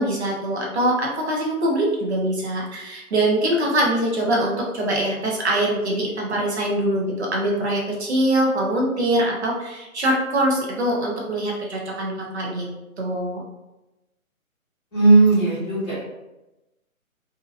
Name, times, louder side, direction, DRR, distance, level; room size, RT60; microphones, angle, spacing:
voice 1, 0.0-12.7 13.0-13.4, right 1 dB, 50° right, -1 dB, 0.9 m, -23 dB
voice 2, 14.9-16.0, right 3 dB, 5° left, -17 dB, 0.9 m, -16 dB
2.8 x 2.8 x 2.5 m, 0.98 s
hypercardioid pair, 165°, 42 cm